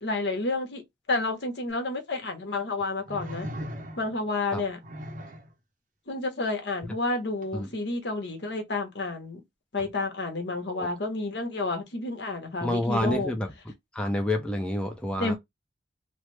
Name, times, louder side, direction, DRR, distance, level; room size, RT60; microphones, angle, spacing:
voice 1, 0.0-3.5 4.0-4.8 6.1-9.4 9.7-13.3 15.2-15.4, left 2 dB, 70° left, 1.0 m, -30 dB
sound 1, 1.7-1.8 3.1-4.3 4.8-5.5 7.4-7.5, equal, 45° right, 0.6 m, -38 dB
voice 2, 12.6-13.5 13.9-15.4, left 1 dB, 5° left, 0.4 m, -28 dB
3.2 x 2.1 x 3.2 m
head